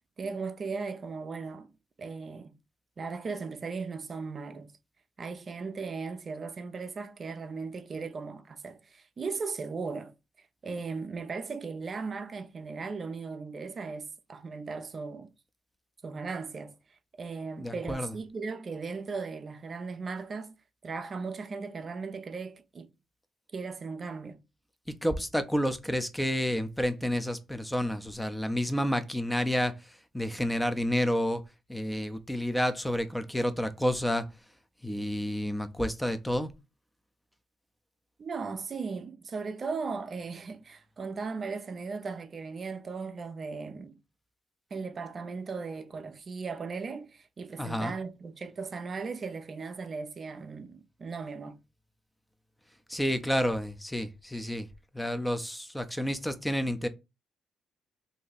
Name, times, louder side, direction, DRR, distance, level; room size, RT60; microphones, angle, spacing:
voice 1, 0.2-1.7 2.0-2.5 3.0-4.7 5.2-10.1 10.6-15.3 16.0-16.7 17.2-20.6 20.8-22.9 23.5-24.4 38.2-44.0 44.7-51.6, right 4 dB, 40° right, 0.5 m, -37 dB
voice 2, 17.6-18.2 25.0-31.4 31.7-34.2 34.8-36.5 47.6-48.0 52.9-54.7 54.9-56.9, equal, 5° left, 0.5 m, -30 dB
2.7 x 2.6 x 3.9 m
cardioid pair, 90°, 0 cm